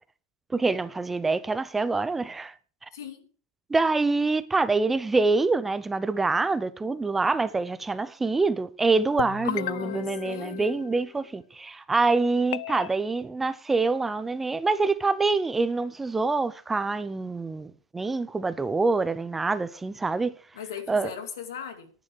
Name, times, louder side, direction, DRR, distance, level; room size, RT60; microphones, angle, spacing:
voice 1, 0.5-2.5 3.7-20.3 20.9-21.1, right 3 dB, 10° right, 0.6 m, -25 dB
voice 2, 2.9-3.3 9.4-10.9 20.5-21.9, left 8 dB, 85° left, 2.7 m, -38 dB
sound 1, 9.2-11.3 12.5-12.9, left 15 dB, 70° left, 0.4 m, -35 dB
11.0 x 9.2 x 4.7 m
supercardioid pair, 145°, 2 cm